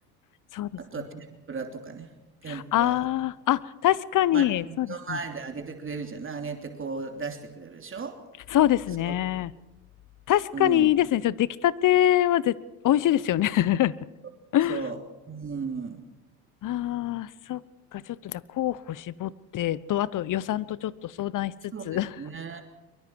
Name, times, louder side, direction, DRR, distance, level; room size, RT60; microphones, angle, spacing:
voice 1, 0.8-2.1 2.4-3.0 4.3-4.4 4.8-8.2 9.0-9.1 10.5-10.9 14.7-15.0 15.3-16.0 21.7-22.6, right 5 dB, 25° right, 4 dB, 3.1 m, -35 dB
voice 2, 2.5-5.2 8.5-9.5 10.3-12.6 12.8-13.9 14.5-14.8 16.6-17.6 17.9-21.5 21.8-22.2, left 12 dB, 45° left, 20 dB, 1.0 m, -24 dB
23.5 x 23.5 x 4.7 m, 1.1 s
hypercardioid pair, 75°, 45 cm